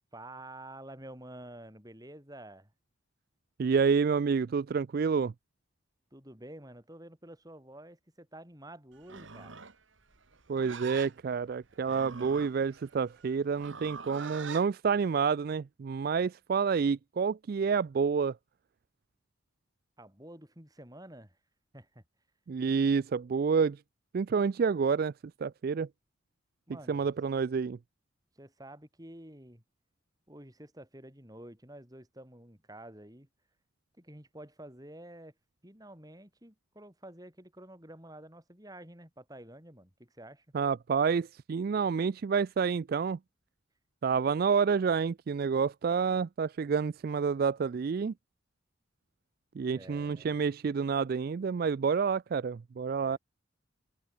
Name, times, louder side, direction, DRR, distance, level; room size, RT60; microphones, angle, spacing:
voice 1, 0.1-2.7 6.1-9.7 20.0-21.4 21.7-22.0 26.7-27.1 28.3-29.6 30.3-33.3 34.0-35.3 35.6-40.4 49.7-50.4 52.9-53.2, right 1 dB, 20° right, 5.1 m, -49 dB
voice 2, 3.6-5.3 10.5-18.4 22.5-23.8 24.1-25.1 25.4-25.9 26.9-27.8 40.5-43.2 44.0-48.1 49.6-53.2, right 5 dB, 45° right, 0.3 m, -28 dB
Livestock farm animals working animals, 9.0-14.7, right 5 dB, 70° right, 1.8 m, -45 dB
head